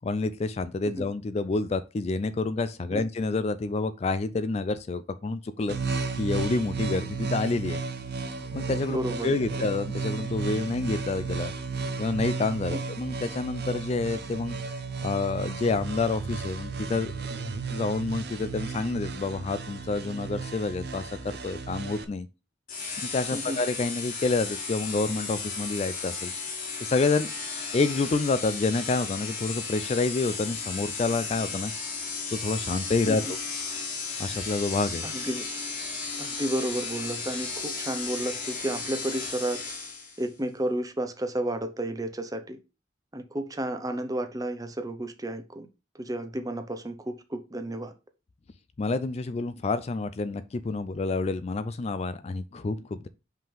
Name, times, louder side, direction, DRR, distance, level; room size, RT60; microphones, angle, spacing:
voice 1, 0.0-5.8 6.2-7.8 8.5-9.0 9.2-11.5 12.0-14.6 15.0-17.1 17.7-22.3 23.1-26.3 26.8-27.3 27.7-31.7 32.3-33.4 34.2-35.1 48.8-53.1, left 3 dB, 35° left, 0.3 m, -28 dB
sound 1, 5.7-22.0, right 5 dB, 60° right, 0.8 m, -34 dB
voice 2, 8.9-9.4 12.7-12.8 23.3-23.6 33.1-33.3 35.0-35.5 36.2-39.6 40.2-42.6 43.1-45.7 45.9-47.9, right 1 dB, 20° right, 0.7 m, -32 dB
sound 2, 22.7-40.3, left 4 dB, 50° left, 1.7 m, -35 dB
5.4 x 3.7 x 5.2 m
head